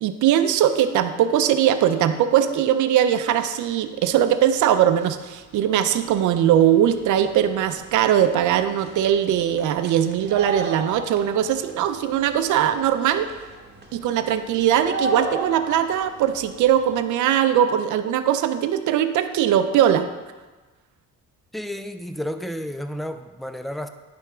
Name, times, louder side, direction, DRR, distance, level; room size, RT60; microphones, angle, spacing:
voice 1, 0.0-13.3 13.9-20.1, right 10 dB, 80° right, 9 dB, 0.6 m, -20 dB
sound 1, 3.9-4.0 4.3-17.0, right 3 dB, 35° right, 1.3 m, -37 dB
voice 2, 21.5-23.9, equal, ahead, 8 dB, 0.5 m, -31 dB
9.9 x 3.5 x 4.9 m, 1.2 s
cardioid pair, 90°, 30 cm